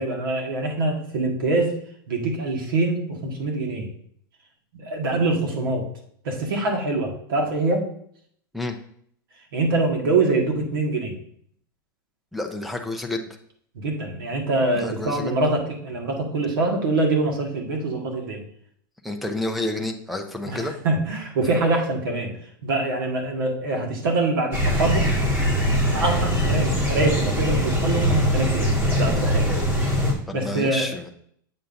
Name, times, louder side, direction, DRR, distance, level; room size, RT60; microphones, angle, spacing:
voice 1, 0.0-1.7 2.1-3.9 4.7-5.8 6.2-7.8 9.5-11.1 13.7-18.4 20.4-22.3 22.6-25.1 25.9-29.5 30.3-30.9, right 2 dB, 90° right, 1 dB, 1.7 m, -24 dB
voice 2, 12.3-13.3 14.7-15.3 19.0-20.8 30.3-31.1, left 2 dB, ahead, 2 dB, 0.4 m, -29 dB
sound 1, 24.5-30.1, equal, 15° right, 1.1 m, -22 dB
7.8 x 5.5 x 2.6 m, 0.65 s
supercardioid pair, 155°, 11 cm